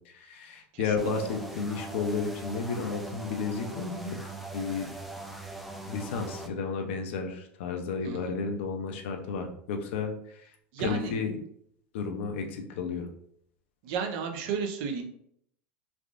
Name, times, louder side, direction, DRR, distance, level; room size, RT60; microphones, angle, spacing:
voice 1, 0.0-4.2 4.5-4.9 5.8-10.5 10.8-11.4 11.9-13.1, left 5 dB, 75° left, 4 dB, 0.6 m, -32 dB
voice 2, 0.7-1.1 8.0-8.3 10.7-11.2 13.8-15.0, right 6 dB, 60° right, 4 dB, 0.6 m, -33 dB
sound 1, 1.0-6.5, right 2 dB, ahead, 0.4 m, -41 dB
3.4 x 2.5 x 2.5 m, 0.68 s
supercardioid pair, 115°, 6 cm